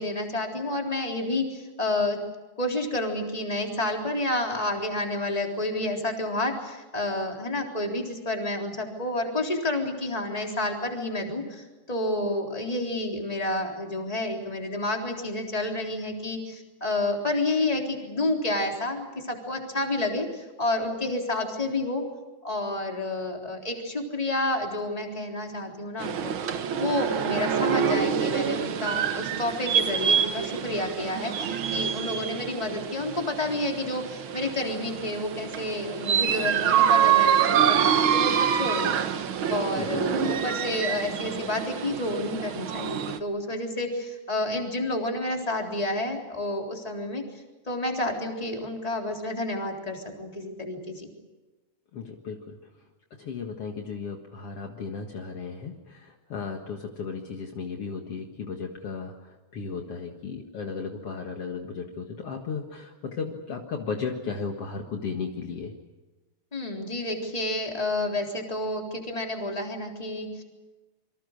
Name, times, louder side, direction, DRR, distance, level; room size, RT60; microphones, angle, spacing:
voice 1, 0.0-2.2 2.6-22.0 22.4-26.3 26.8-39.2 39.5-51.1 66.5-70.4, left 2 dB, 10° left, 1 dB, 3.6 m, -30 dB
sound 1, 26.0-43.2, right 8 dB, 55° right, 1.6 m, -26 dB
voice 2, 51.9-52.8 53.1-65.7, left 5 dB, 55° left, 3 dB, 2.5 m, -35 dB
27.5 x 24.5 x 6.6 m, 1.1 s
omnidirectional pair, 3.3 m